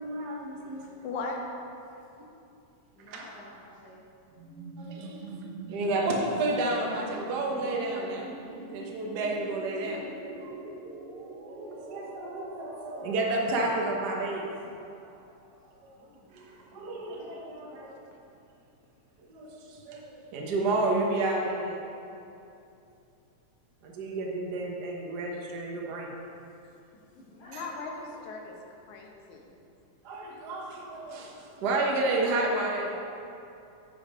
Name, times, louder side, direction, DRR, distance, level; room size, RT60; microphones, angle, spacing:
voice 1, 0.0-1.0 3.1-3.3 4.8-5.2 5.7-8.3 8.7-10.0 10.4-10.5 11.5-14.8 16.3-17.9 19.3-21.8 23.8-26.1 27.5-27.6 30.0-33.0, right 2 dB, 90° right, -1 dB, 0.9 m, -31 dB
voice 2, 0.5-0.9 2.9-4.0 15.9-16.3 16.7-17.4 27.1-28.3, left 1 dB, 60° left, -8 dB, 2.4 m, -53 dB
voice 3, 1.0-1.4 27.5-28.6 28.9-29.5, left 4 dB, 80° left, 1 dB, 2.4 m, -37 dB
sound 1, 4.3-16.1, right 2 dB, 60° right, 1.6 m, -43 dB
9.0 x 6.8 x 5.1 m, 2.7 s
omnidirectional pair, 3.4 m